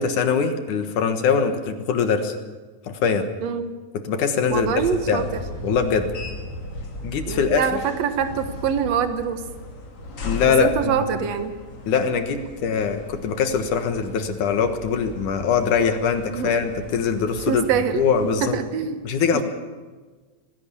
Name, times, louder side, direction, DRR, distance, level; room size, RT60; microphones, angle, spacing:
voice 1, 0.0-2.3 2.9-3.3 4.0-5.3 5.6-6.1 7.0-7.7 10.2-10.7 11.9-17.6 17.9-18.5 19.0-19.4, left 6 dB, 65° left, 7 dB, 2.6 m, -22 dB
voice 2, 3.4-3.7 4.5-5.4 7.3-9.4 10.6-11.5 16.3-16.5 17.5-18.1 18.4-19.0 19.3-19.4, right 7 dB, 60° right, 8 dB, 2.0 m, -24 dB
sound 1, 4.5-18.6, left 1 dB, 45° left, 3.1 m, -37 dB
19.0 x 16.5 x 8.4 m, 1.4 s
omnidirectional pair, 4.3 m